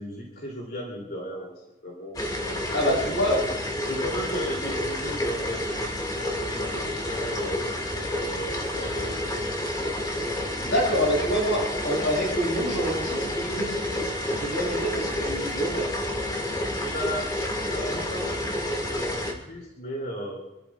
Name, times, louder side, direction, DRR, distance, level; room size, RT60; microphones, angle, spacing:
voice 1, 0.0-3.0 3.8-7.6 8.1-9.3 16.8-17.4 17.6-20.4, equal, 50° left, -1 dB, 2.9 m, -36 dB
sound 1, 2.1-19.3, left 1 dB, 20° left, 2.0 m, -29 dB
voice 2, 2.7-3.4 10.6-14.1 14.4-15.9, equal, 80° left, -1 dB, 6.6 m, -27 dB
28.5 x 13.5 x 2.4 m, 1.0 s
head